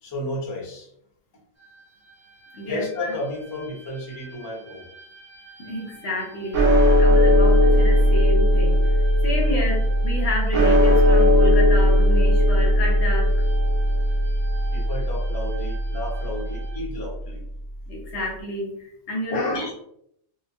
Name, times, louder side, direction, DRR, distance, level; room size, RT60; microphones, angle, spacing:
voice 1, 0.0-0.9 2.6-4.8 14.7-17.5 19.3-19.8, left 1 dB, 30° left, -2 dB, 0.4 m, -32 dB
sound 1, 1.6-16.8, right 7 dB, 45° right, 0.6 m, -46 dB
voice 2, 2.5-3.1 5.6-8.9 9.2-13.5 17.9-19.7, left 1 dB, 60° left, -1 dB, 0.7 m, -30 dB
sound 2, 6.5-17.0, equal, 80° right, 1.0 m, -18 dB
2.5 x 2.2 x 2.2 m, 0.71 s
omnidirectional pair, 1.3 m